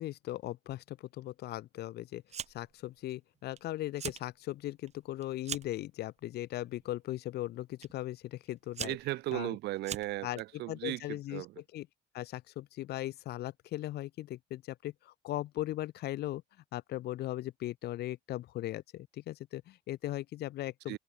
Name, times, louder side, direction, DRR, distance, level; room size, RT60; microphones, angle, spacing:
voice 1, 0.0-2.2 2.5-9.0 9.3-9.6 10.2-10.4 10.7-11.4 11.7-11.9 12.1-16.4 16.7-21.0, left 15 dB, 75° left, 3.0 m, -38 dB
Fire, 2.3-2.8 3.1-3.6 3.9-4.3 4.7-5.8 6.6-6.9 7.8-7.9 8.5-10.4, right 8 dB, 40° right, 1.3 m, -41 dB
voice 2, 8.8-11.6 20.9-21.0, right 18 dB, 85° right, 5.6 m, -37 dB
cardioid pair, 110°, 17 cm